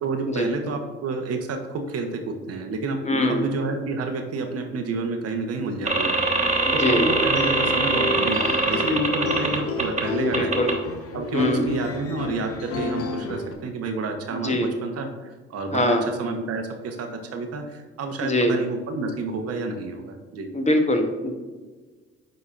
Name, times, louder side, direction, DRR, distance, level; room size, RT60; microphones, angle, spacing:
voice 1, 0.0-3.0 3.3-6.2 6.7-10.7 11.1-20.5, right 3 dB, 50° right, 4 dB, 1.0 m, -29 dB
voice 2, 3.1-3.5 6.7-7.0 10.2-10.7 11.3-11.6 14.4-14.7 15.7-16.0 18.2-18.6 20.5-21.3, left 1 dB, 20° left, 4 dB, 1.0 m, -22 dB
sound 1, 5.8-10.0 10.3-10.7, right 2 dB, 20° right, 1.4 m, -23 dB
sound 2, 7.1-13.5, left 3 dB, 50° left, 0.9 m, -31 dB
9.2 x 4.1 x 2.5 m, 1.3 s
hypercardioid pair, 60°, 31 cm